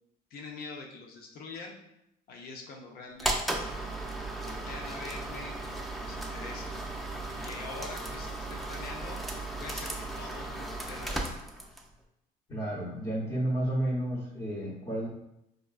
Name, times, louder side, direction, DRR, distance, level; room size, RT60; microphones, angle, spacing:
voice 1, 0.3-1.8 2.3-3.7 4.4-5.6 5.9-6.7 7.4-9.2 9.6-11.3, left 3 dB, 65° left, 2 dB, 0.6 m, -44 dB
sound 1, 3.2-11.9, right 2 dB, ahead, 0.4 m, -36 dB
voice 2, 12.5-15.1, right 1 dB, 25° left, -7 dB, 1.0 m, -31 dB
4.8 x 2.2 x 2.4 m, 0.83 s
cardioid pair, 110°, 17 cm